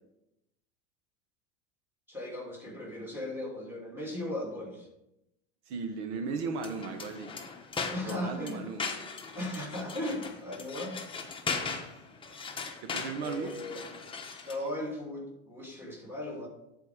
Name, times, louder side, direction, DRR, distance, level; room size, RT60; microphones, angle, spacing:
voice 1, 2.1-4.9 7.9-8.7 9.3-11.0 13.2-13.8 14.4-16.5, left 1 dB, 5° right, -1 dB, 2.5 m, -37 dB
voice 2, 5.7-7.3 8.0-8.9 12.8-13.5, right 4 dB, 75° right, 6 dB, 1.2 m, -36 dB
sound 1, 6.5-14.7, left 4 dB, 15° left, 1.0 m, -39 dB
11.0 x 4.6 x 5.0 m, 0.87 s
supercardioid pair, 125°, 34 cm